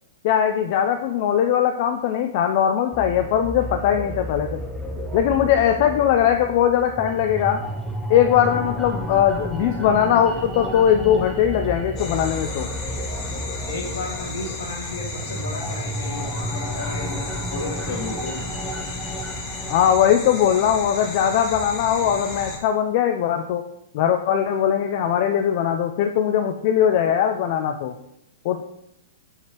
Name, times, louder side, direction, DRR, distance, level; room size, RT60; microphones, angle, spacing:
voice 1, 0.2-4.6 5.1-7.6 8.1-12.7 19.7-23.6 23.9-27.9 28.4-28.6, left 9 dB, 50° left, 5 dB, 0.4 m, -20 dB
sound 1, 2.9-19.9, equal, 5° right, 0.7 m, -32 dB
sound 2, 12.0-22.6, left 3 dB, 30° left, 1.3 m, -34 dB
voice 2, 13.7-18.5, left 2 dB, 75° left, -1 dB, 1.9 m, -33 dB
6.6 x 5.5 x 3.0 m, 0.80 s
hypercardioid pair, 120°, 0 cm